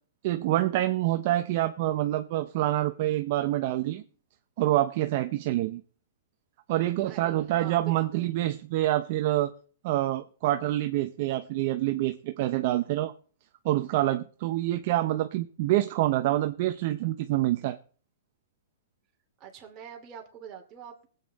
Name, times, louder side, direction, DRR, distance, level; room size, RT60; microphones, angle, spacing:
voice 1, 0.2-4.0 4.6-5.8 6.7-9.5 9.8-13.1 13.6-17.8, right 15 dB, 45° right, 0.8 m, -26 dB
voice 2, 7.1-8.3 19.4-21.1, right 9 dB, 25° right, 2.7 m, -44 dB
20.0 x 8.4 x 4.2 m
hypercardioid pair, 155°, 0 cm